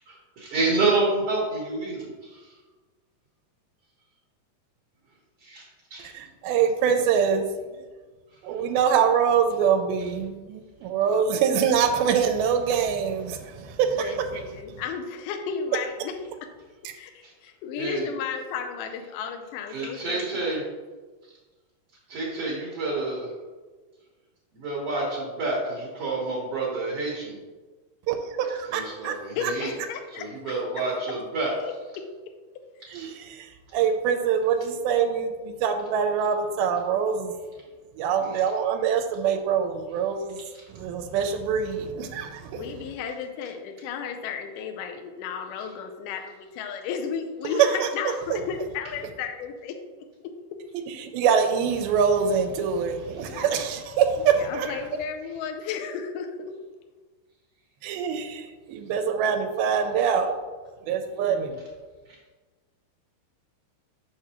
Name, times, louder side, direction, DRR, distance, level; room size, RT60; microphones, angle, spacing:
voice 1, 0.1-2.5 5.4-5.6 5.9-6.1 17.2-17.3 17.8-18.1 19.7-20.6 22.1-23.3 24.5-27.4 28.7-29.7 30.1-31.5 32.9-33.1 38.2-38.4 40.5-40.6 53.2-53.3, right 3 dB, 65° right, -4 dB, 1.5 m, -28 dB
voice 2, 6.1-7.8 8.4-14.6 28.1-29.5 32.9-37.4 38.0-40.4 40.7-42.6 47.6-47.9 48.3-48.4 50.9-54.8 57.8-60.3 60.9-61.6, right 7 dB, 90° right, 5 dB, 2.4 m, -24 dB
voice 3, 14.0-16.1 16.9-17.1 17.4-20.2 29.1-30.6 31.4-32.0 32.8-32.9 42.5-49.8 50.2-50.3 53.2-53.7 54.4-56.5, left 6 dB, 80° left, 4 dB, 1.9 m, -34 dB
6.5 x 5.9 x 2.9 m, 1.3 s
omnidirectional pair, 4.2 m